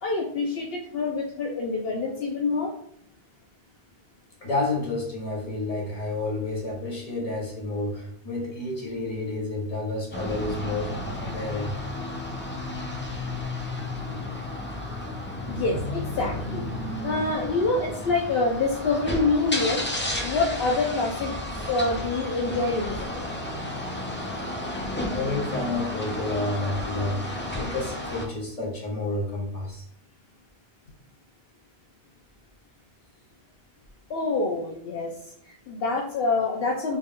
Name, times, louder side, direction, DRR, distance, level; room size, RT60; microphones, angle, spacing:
voice 1, 0.0-2.7 12.7-12.9 15.5-16.7 17.0-19.9 20.2-23.3 34.1-35.1 35.4-37.0, left 3 dB, 70° left, -1 dB, 0.8 m, -26 dB
voice 2, 4.4-11.7 25.1-29.8, left 2 dB, 35° left, -2 dB, 1.0 m, -30 dB
sound 1, 10.1-28.3, left 1 dB, 15° left, 0.4 m, -32 dB
4.1 x 2.3 x 3.6 m, 0.68 s
omnidirectional pair, 1.1 m